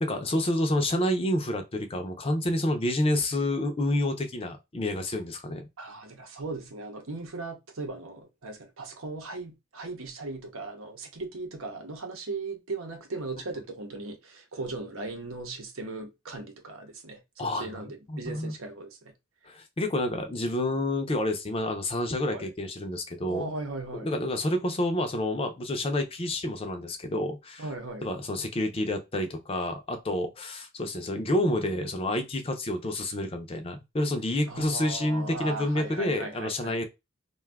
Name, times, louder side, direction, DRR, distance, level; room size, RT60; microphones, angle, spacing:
voice 1, 0.0-5.7 17.4-18.5 19.5-23.5 24.0-27.7 28.0-36.8, left 1 dB, 25° left, 0.5 m, -29 dB
voice 2, 5.8-19.1 22.3-22.5 23.3-24.1 27.6-28.1 34.5-36.7, right 3 dB, 80° right, 0.8 m, -38 dB
2.6 x 2.3 x 3.3 m
head